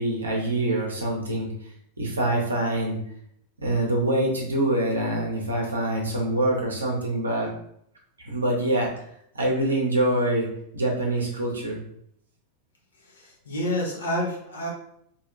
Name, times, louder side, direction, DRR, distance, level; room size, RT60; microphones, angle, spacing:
voice 1, 0.0-1.5 2.0-3.0 3.6-7.5 8.2-8.9 9.3-10.5 10.7-11.8, right 1 dB, 75° right, -2 dB, 0.7 m, -25 dB
voice 2, 13.1-14.7, left 1 dB, 70° left, -1 dB, 0.7 m, -29 dB
2.6 x 2.1 x 2.4 m, 0.71 s
figure-of-eight pair, 90°, 0 cm